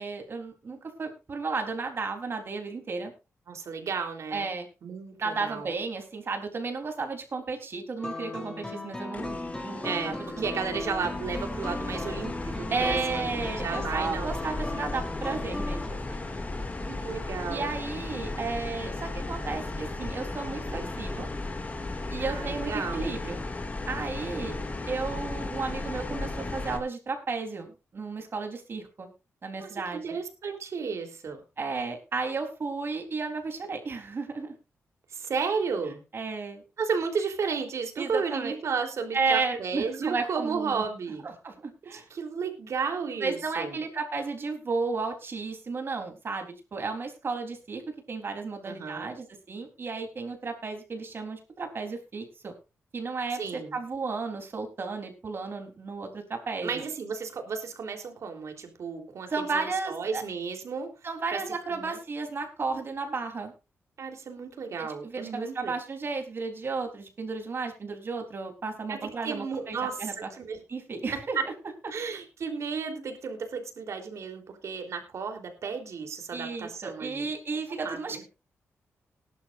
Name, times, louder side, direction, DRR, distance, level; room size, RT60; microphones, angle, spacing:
voice 1, 0.0-3.1 4.3-4.7 5.2-10.4 10.7-10.9 12.7-16.2 17.5-21.3 22.1-23.4 23.9-24.6 24.9-29.1 29.4-30.2 31.6-34.5 36.1-36.6 38.0-38.5 39.1-40.9 41.2-42.1 43.2-47.8 48.1-52.5 52.9-53.4 53.7-56.8 59.3-60.2 61.0-63.5 64.8-70.3 70.7-71.4 76.3-78.2, right 4 dB, 45° right, 4 dB, 3.8 m, -33 dB
voice 2, 3.5-4.5 4.8-5.7 9.8-14.3 16.9-17.7 22.2-23.1 24.2-24.7 29.6-31.4 35.1-36.0 36.8-41.3 41.9-43.8 48.6-49.2 53.4-53.8 56.6-60.9 61.3-61.4 61.8-62.0 64.0-65.7 68.9-70.6 71.4-71.5 71.9-77.3 77.8-78.2, right 5 dB, 70° right, 4 dB, 3.5 m, -33 dB
sound 1, 8.0-15.9, left 2 dB, 10° left, 3.6 m, -37 dB
sound 2, 9.1-26.8, left 2 dB, 30° left, 2.4 m, -35 dB
19.0 x 11.5 x 2.6 m, 0.30 s
cardioid pair, 100°, 5 cm